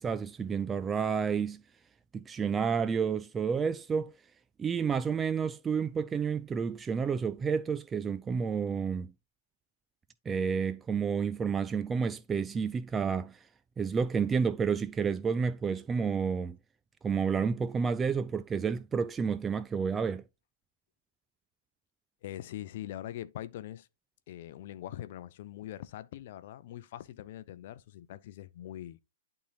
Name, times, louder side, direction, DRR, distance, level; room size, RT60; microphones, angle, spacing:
voice 1, 0.0-1.6 2.1-4.1 4.6-9.1 10.3-13.4 13.8-16.6 17.0-20.2, right 6 dB, 15° right, 0.3 m, -30 dB
voice 2, 22.2-23.9 24.3-29.0, left 12 dB, 45° left, 0.6 m, -42 dB
11.0 x 3.8 x 2.8 m
figure-of-eight pair, 110°, 0 cm